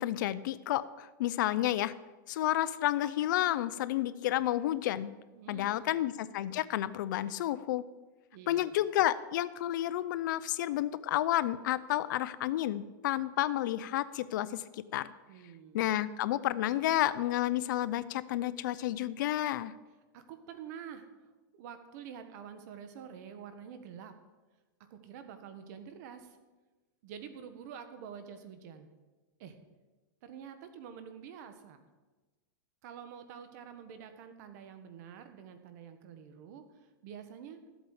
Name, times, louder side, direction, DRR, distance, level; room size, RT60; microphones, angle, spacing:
voice 1, 0.0-1.9 2.3-5.1 5.5-7.8 8.5-15.1 15.7-19.7, left 13 dB, 65° left, 16 dB, 0.5 m, -31 dB
voice 2, 5.3-6.0 8.3-8.8 15.3-15.8 20.1-21.1 21.5-24.1 24.9-26.4 27.0-28.9 29.4-29.6 30.2-31.9 32.8-36.7 37.0-37.6, right 8 dB, 55° right, 9 dB, 1.3 m, -47 dB
13.5 x 8.1 x 4.9 m, 1.2 s
supercardioid pair, 145°, 11 cm